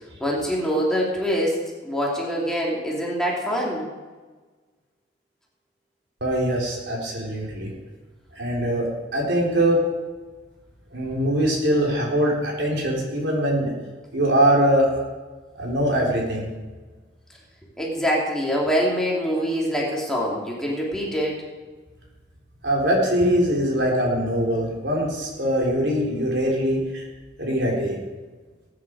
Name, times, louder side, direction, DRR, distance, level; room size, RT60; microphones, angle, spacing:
voice 1, 0.2-1.6 1.8-3.9 17.8-21.4, equal, 5° left, -4 dB, 2.8 m, -24 dB
voice 2, 6.2-7.7 8.3-9.8 10.9-13.7 14.1-14.9 15.6-16.5 22.6-27.0 27.4-28.0, right 1 dB, 70° right, -2 dB, 4.0 m, -22 dB
19.5 x 9.8 x 4.8 m, 1.3 s
head